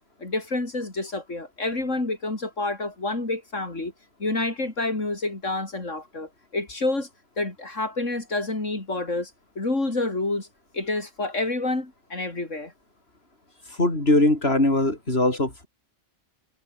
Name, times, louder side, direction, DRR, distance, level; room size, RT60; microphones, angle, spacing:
voice 1, 0.2-3.9 4.2-7.1 7.4-10.5 10.7-12.7, left 2 dB, 85° left, 5.0 m, -28 dB
voice 2, 13.8-15.7, left 2 dB, 55° left, 6.4 m, -21 dB
omnidirectional pair, 1.3 m